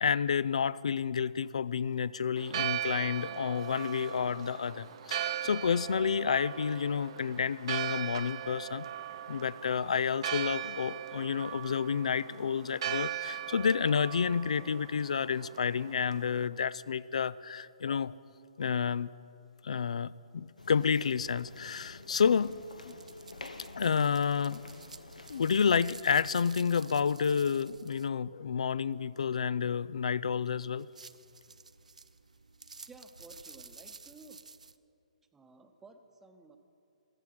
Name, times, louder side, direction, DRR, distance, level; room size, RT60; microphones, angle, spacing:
voice 1, 0.0-8.8 9.3-18.1 18.6-19.1 19.6-22.6 22.9-23.0 23.7-24.6 25.3-30.9, left 6 dB, 65° left, 20 dB, 0.4 m, -30 dB
Church bell, 2.4-16.5, right 11 dB, 45° right, 0.8 m, -39 dB
sound 1, 20.6-25.8, left 2 dB, 80° left, 1.0 m, -49 dB
sound 2, 20.6-28.1 30.8-34.8, right 4 dB, 75° right, 0.5 m, -52 dB
voice 2, 32.9-34.4 35.3-36.6, right 3 dB, 10° right, 6 dB, 0.9 m, -54 dB
16.0 x 14.0 x 6.0 m, 2.6 s
figure-of-eight pair, 130°, 4 cm